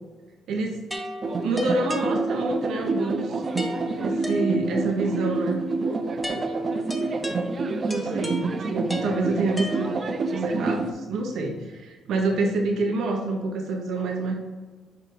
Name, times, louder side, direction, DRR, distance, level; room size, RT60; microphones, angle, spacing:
sound 1, 0.9-2.7 3.6-5.0 6.2-10.3, left 1 dB, 10° left, 1.0 m, -36 dB
sound 2, 1.2-10.9, right 3 dB, 40° right, 0.6 m, -28 dB
voice 1, 1.4-3.4 4.0-5.6 7.9-10.0 10.3-14.3, right 3 dB, 75° right, 2 dB, 0.9 m, -27 dB
5.1 x 4.7 x 4.9 m, 1.2 s
cardioid pair, 90°, 0 cm